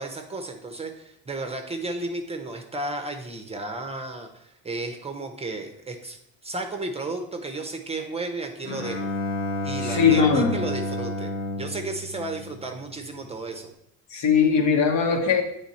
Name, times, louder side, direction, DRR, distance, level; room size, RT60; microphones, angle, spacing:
voice 1, 0.0-6.2 6.4-9.1 9.6-11.3 11.6-13.7, right 2 dB, 20° right, 4 dB, 0.7 m, -33 dB
Bowed string instrument, 8.6-13.0, left 1 dB, 40° left, 1.0 m, -31 dB
voice 2, 9.8-10.5 14.1-15.4, left 6 dB, 60° left, 3 dB, 1.3 m, -20 dB
8.0 x 3.5 x 4.1 m, 0.78 s
supercardioid pair, 95°, 33 cm